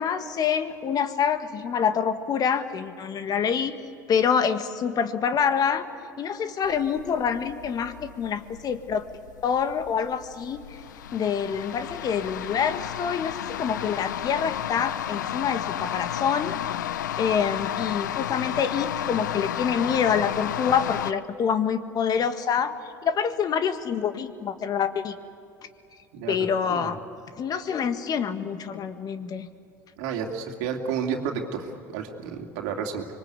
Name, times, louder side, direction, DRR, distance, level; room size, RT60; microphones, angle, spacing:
voice 1, 0.0-3.7 4.1-5.8 6.2-9.0 9.4-10.6 11.1-16.9 17.2-22.7 23.0-25.2 26.3-27.0 27.4-29.5, left 7 dB, 40° left, 10 dB, 1.6 m, -26 dB
sound 1, 6.6-21.1, left 11 dB, 80° left, 0.6 m, -32 dB
voice 2, 30.0-33.1, right 6 dB, 65° right, 3 dB, 2.6 m, -31 dB
25.5 x 22.5 x 8.4 m, 2.7 s
hypercardioid pair, 75°, 10 cm